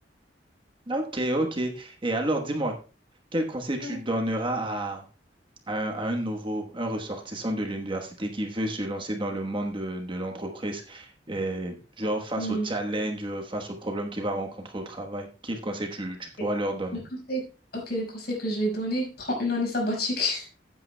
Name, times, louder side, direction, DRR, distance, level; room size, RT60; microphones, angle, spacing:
voice 1, 0.9-2.7 3.3-5.0 5.7-17.0, right 1 dB, 30° right, 3 dB, 1.2 m, -30 dB
voice 2, 17.7-20.5, left 1 dB, 60° left, -1 dB, 5.2 m, -28 dB
15.0 x 8.7 x 2.2 m, 0.35 s
head